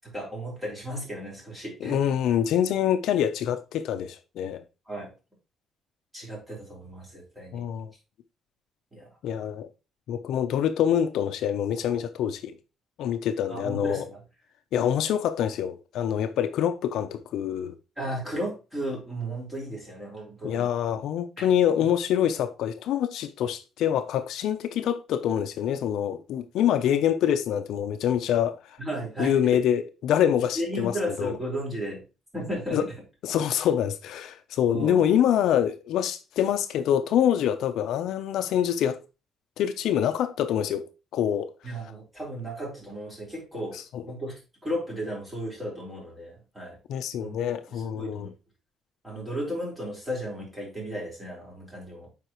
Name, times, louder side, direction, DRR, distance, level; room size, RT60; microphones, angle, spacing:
voice 1, 0.0-2.0 4.9-5.1 6.1-7.6 8.9-9.1 13.5-14.2 18.0-20.6 21.4-21.5 21.8-21.9 28.8-29.6 30.5-32.0 32.3-32.9 34.7-35.0 41.6-43.8 44.1-46.8 47.2-47.4 47.7-48.3 49.0-52.1, right 1 dB, 10° right, 4.4 m, -34 dB
voice 2, 1.8-4.6 7.5-7.9 9.2-9.7 10.1-12.5 13.0-14.0 14.7-17.8 20.4-28.6 29.2-31.3 32.7-32.9 33.2-39.0 39.6-40.9 41.1-41.5 43.9-44.0 46.9-48.3, left 9 dB, 80° left, 0.6 m, -25 dB
8.1 x 4.9 x 3.0 m
cardioid pair, 135°, 0 cm